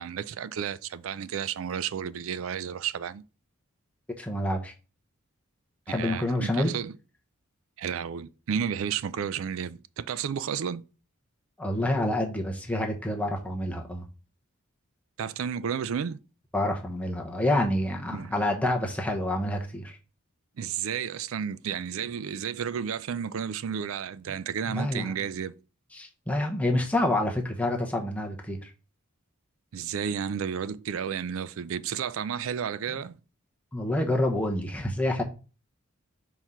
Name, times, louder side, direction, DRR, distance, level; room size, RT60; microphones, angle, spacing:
voice 1, 0.0-3.2 5.9-6.9 7.8-10.8 15.2-16.2 18.1-18.3 20.6-25.5 29.7-33.2, right 7 dB, 70° right, 0.4 m, -32 dB
voice 2, 4.2-4.7 5.9-6.7 11.6-14.0 16.5-20.0 24.6-25.1 25.9-28.7 33.7-35.2, left 1 dB, 5° left, 0.9 m, -28 dB
4.5 x 3.7 x 5.6 m
head